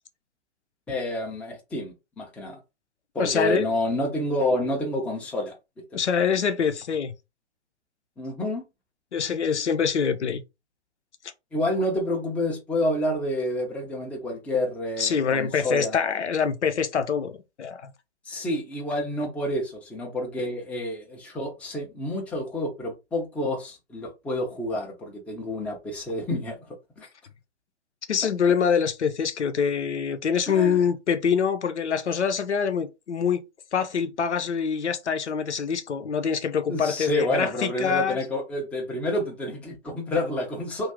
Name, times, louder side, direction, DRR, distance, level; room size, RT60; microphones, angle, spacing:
voice 1, 0.9-2.6 3.1-5.5 8.2-8.6 11.5-15.9 18.3-26.6 27.0-27.1 30.5-30.8 36.7-40.9, left 1 dB, 5° left, 0.6 m, -29 dB
voice 2, 3.2-3.7 5.9-7.1 9.1-10.4 15.0-17.9 28.1-33.4 33.7-38.2, left 7 dB, 80° left, 0.7 m, -25 dB
2.7 x 2.5 x 3.3 m
figure-of-eight pair, 120°, 34 cm